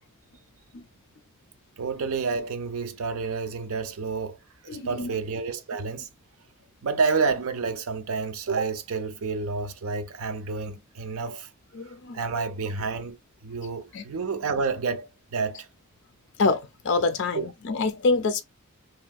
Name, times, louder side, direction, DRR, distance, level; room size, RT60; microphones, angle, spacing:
voice 1, 1.8-4.4 4.8-6.1 6.8-11.5 11.9-15.7 17.3-17.4, right 4 dB, 80° right, 0.5 m, -29 dB
voice 2, 4.7-5.1 11.7-12.2 13.9-14.0 16.4-18.4, left 3 dB, 55° left, 0.4 m, -26 dB
3.1 x 2.6 x 2.3 m
head